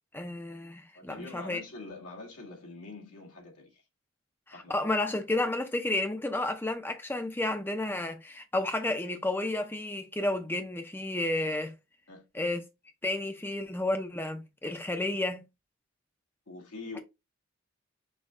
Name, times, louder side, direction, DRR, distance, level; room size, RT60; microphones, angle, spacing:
voice 1, 0.1-1.6 4.5-11.7 12.3-12.6 13.0-15.4, left 2 dB, 10° left, 0.5 m, -31 dB
voice 2, 0.9-3.8 4.5-4.9 12.1-12.2 16.5-17.0, left 3 dB, 85° left, 2.1 m, -44 dB
6.2 x 2.3 x 3.6 m
head